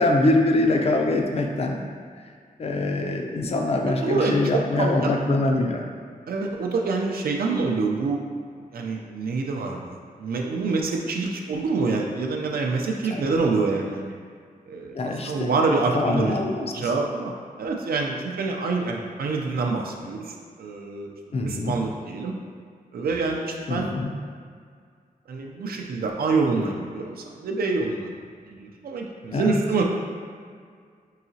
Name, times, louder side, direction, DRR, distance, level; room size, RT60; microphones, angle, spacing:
voice 1, 0.0-1.8 2.6-5.8 13.1-13.2 14.9-15.6 15.9-16.9 21.3-21.8 23.7-24.1 29.3-29.6, left 2 dB, 45° left, 2 dB, 0.4 m, -24 dB
voice 2, 3.9-5.1 6.3-8.2 8.7-14.1 14.7-15.0 15.3-17.3 17.6-21.1 21.4-22.3 22.9-23.9 25.3-28.1 28.5-29.8, right 3 dB, 80° right, 1 dB, 0.4 m, -26 dB
4.7 x 2.8 x 2.7 m, 2.1 s
wide cardioid pair, 165°, 15 cm